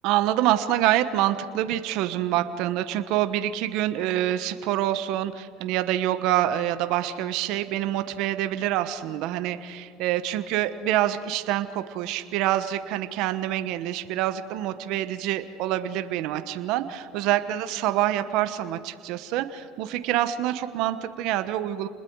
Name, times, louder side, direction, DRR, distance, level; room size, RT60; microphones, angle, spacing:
voice 1, 0.0-21.9, right 13 dB, 65° right, 10 dB, 1.2 m, -26 dB
29.5 x 20.5 x 4.8 m, 2.3 s
supercardioid pair, 100°, 0 cm